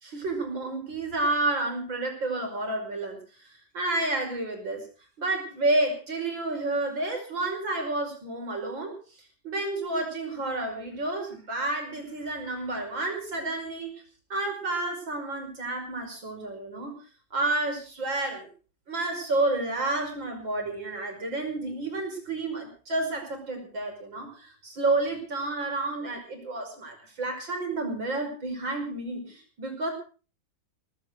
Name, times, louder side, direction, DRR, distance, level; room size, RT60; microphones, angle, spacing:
voice 1, 0.0-3.2 3.4-4.8 5.2-8.9 9.4-14.0 14.3-16.9 17.3-18.5 18.9-29.9, right 2 dB, 75° right, 4 dB, 6.2 m, -30 dB
18.0 x 16.0 x 4.8 m, 0.38 s
omnidirectional pair, 2.1 m